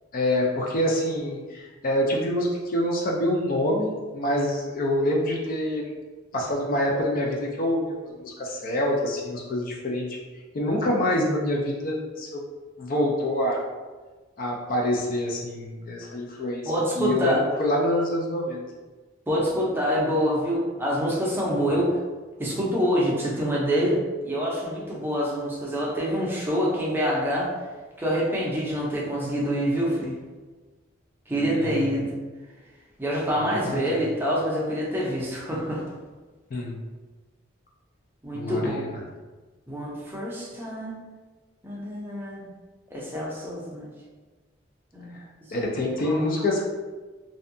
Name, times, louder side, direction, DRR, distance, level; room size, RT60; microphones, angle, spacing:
voice 1, 0.1-5.9 6.3-10.1 10.5-12.4 12.8-13.7 14.4-18.6 31.3-31.9 33.4-33.5 33.7-34.0 36.5-36.8 38.3-38.9 45.1-45.2 45.5-46.6, left 1 dB, 45° left, -1 dB, 0.4 m, -26 dB
voice 2, 16.7-17.4 19.3-21.9 22.4-24.0 24.2-27.5 28.0-30.2 31.3-32.2 33.0-35.8 38.2-38.9 39.7-41.0 41.6-42.5 42.9-43.9 44.9-45.1 46.0-46.2, equal, 10° right, -5 dB, 0.5 m, -26 dB
2.6 x 2.2 x 2.6 m, 1.3 s
head